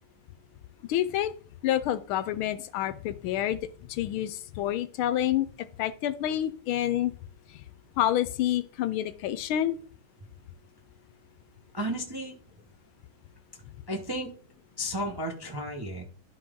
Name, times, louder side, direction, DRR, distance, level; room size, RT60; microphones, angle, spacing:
voice 1, 0.9-1.3 1.6-3.6 3.9-5.5 5.8-7.1 8.0-9.8, left 12 dB, 75° left, 13 dB, 1.4 m, -28 dB
voice 2, 11.7-12.4 13.9-14.3 14.8-16.0, equal, 20° right, 1 dB, 0.7 m, -33 dB
12.0 x 4.2 x 3.8 m, 0.41 s
omnidirectional pair, 2.4 m